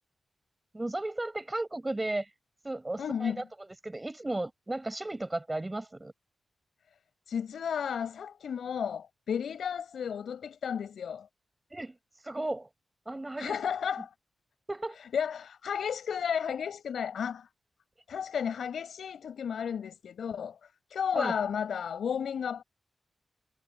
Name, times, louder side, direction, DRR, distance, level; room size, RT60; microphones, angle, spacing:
voice 1, 0.7-2.3 2.6-6.1 11.7-12.0 12.2-12.7 13.1-13.5 14.7-15.0 21.1-21.3, right 2 dB, 20° right, 6.4 m, -35 dB
voice 2, 3.0-3.4 7.3-11.3 13.4-14.1 15.1-17.5 18.1-20.6 20.9-22.6, left 7 dB, 90° left, 5.1 m, -33 dB
wide cardioid pair, 110°, 0 cm